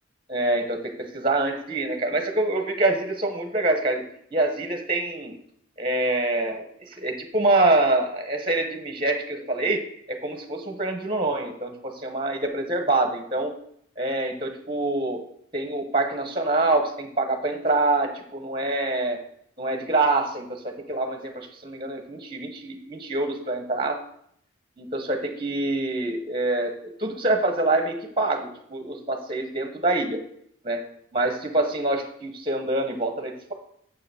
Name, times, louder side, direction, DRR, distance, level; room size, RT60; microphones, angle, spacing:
voice 1, 0.3-4.0 4.3-5.3 5.8-6.6 6.9-9.8 10.1-13.5 14.0-15.2 15.5-19.2 19.6-24.0 24.8-30.2 30.6-30.8 31.1-33.5, right 2 dB, 25° right, 5 dB, 1.1 m, -25 dB
7.0 x 6.8 x 7.0 m, 0.69 s
head